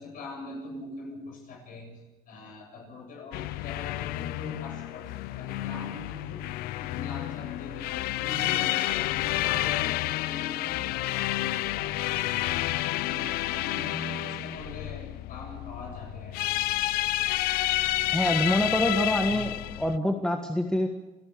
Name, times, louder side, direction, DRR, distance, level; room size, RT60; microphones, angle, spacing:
voice 1, 0.0-12.4 13.0-16.4, left 2 dB, 65° left, 2 dB, 7.8 m, -42 dB
sound 1, 3.3-20.0, left 16 dB, 85° left, 0.6 m, -30 dB
voice 2, 18.1-19.5 19.8-20.9, left 1 dB, 5° left, 3 dB, 1.6 m, -25 dB
29.0 x 13.0 x 6.9 m, 1.1 s
cardioid pair, 110°, 15 cm